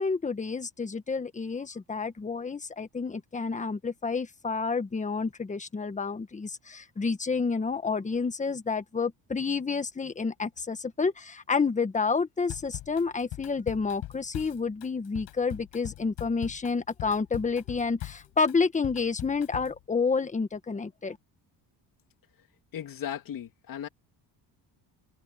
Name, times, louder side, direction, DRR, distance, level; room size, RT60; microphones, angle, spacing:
voice 1, 0.0-21.2, left 4 dB, 15° left, 1.5 m, -29 dB
Drum kit / Drum, 12.5-19.8, left 15 dB, 75° left, 4.8 m, -41 dB
voice 2, 22.7-23.9, left 10 dB, 50° left, 2.8 m, -36 dB
open air
cardioid pair, 130°, 43 cm